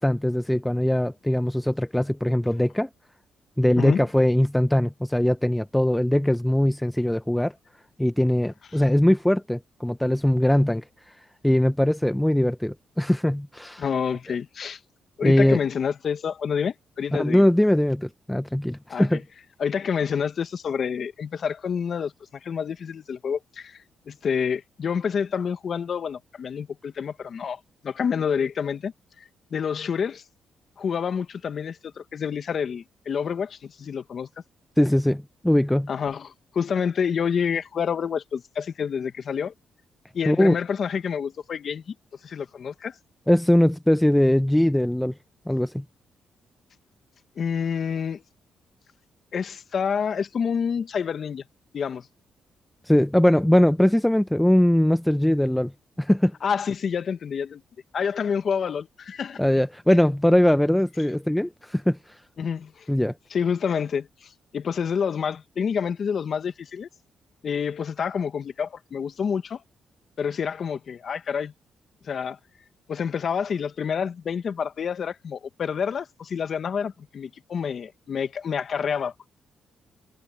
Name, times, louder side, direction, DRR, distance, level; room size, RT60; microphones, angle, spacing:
voice 1, 0.0-2.9 3.6-7.5 8.0-10.8 11.4-13.8 15.2-15.6 17.1-19.2 34.8-35.9 40.3-40.6 43.3-45.1 45.5-45.8 52.9-55.7 56.0-56.3 59.4-62.0 62.9-63.1, left 1 dB, 5° left, 0.7 m, -21 dB
voice 2, 3.8-4.1 8.7-8.8 13.8-14.8 15.2-17.4 18.9-19.2 19.6-22.1 22.4-23.8 24.1-28.9 29.5-30.2 30.8-34.3 35.9-39.5 40.1-41.9 42.2-42.9 47.4-48.2 49.3-51.4 51.7-52.1 56.4-57.6 57.9-59.4 62.4-62.9 63.3-66.9 67.4-69.6 70.2-71.5 72.0-72.4 72.9-79.1, left 7 dB, 50° left, 1.0 m, -28 dB
cardioid pair, 115°, 0 cm